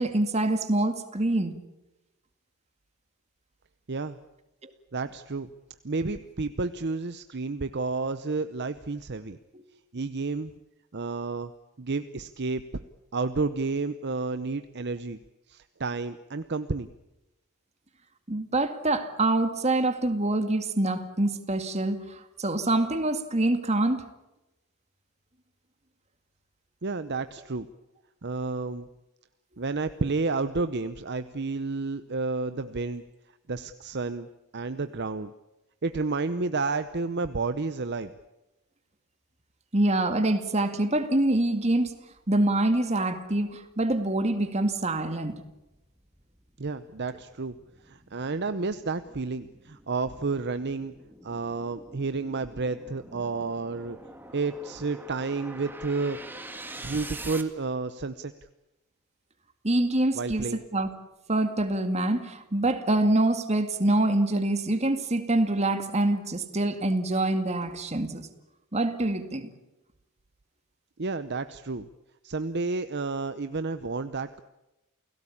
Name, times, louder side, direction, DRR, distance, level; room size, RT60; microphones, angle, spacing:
voice 1, 0.0-1.6 4.6-4.7 9.5-9.6 18.3-24.0 39.7-41.9 42.3-45.3 59.6-60.9 61.3-68.3 68.7-69.4, right 2 dB, 30° right, 2.2 m, -25 dB
voice 2, 4.9-5.5 5.8-9.4 9.9-10.5 10.9-11.5 11.8-12.8 13.1-15.2 15.5-16.9 26.8-27.7 28.2-28.9 29.6-33.0 33.5-34.3 34.5-35.3 35.8-38.1 46.6-47.5 47.8-50.9 51.2-54.0 54.3-56.2 56.8-58.3 60.1-60.6 71.0-71.9 72.2-74.4, right 3 dB, 50° right, 0.8 m, -31 dB
sound 1, 42.7-42.8 43.3-57.4, right 2 dB, 10° right, 1.9 m, -46 dB
29.0 x 17.5 x 8.6 m
head